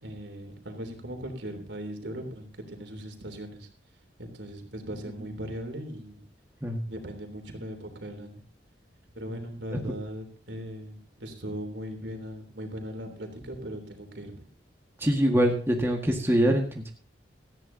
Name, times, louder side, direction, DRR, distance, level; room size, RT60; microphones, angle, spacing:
voice 1, 0.0-3.7 4.2-6.2 6.9-8.5 9.1-14.5, equal, 75° right, 5 dB, 3.4 m, -39 dB
voice 2, 15.0-16.9, equal, 15° right, 0 dB, 1.8 m, -24 dB
18.5 x 14.0 x 2.8 m, 0.42 s
head